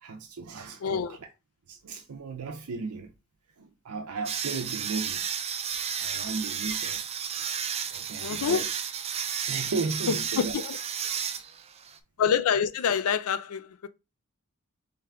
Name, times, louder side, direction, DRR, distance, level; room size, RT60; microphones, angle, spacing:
voice 1, 0.0-1.1 1.7-3.1 3.6-5.5 6.0-7.1 7.9-8.7 9.2-10.5, right 4 dB, 90° right, 0.6 m, -35 dB
voice 2, 0.8-1.2 8.2-8.7 10.1-10.8 12.2-13.9, left 7 dB, 70° left, 0.4 m, -27 dB
sound 1, 4.3-12.0, right 8 dB, 30° right, 0.4 m, -32 dB
3.7 x 3.3 x 3.3 m
head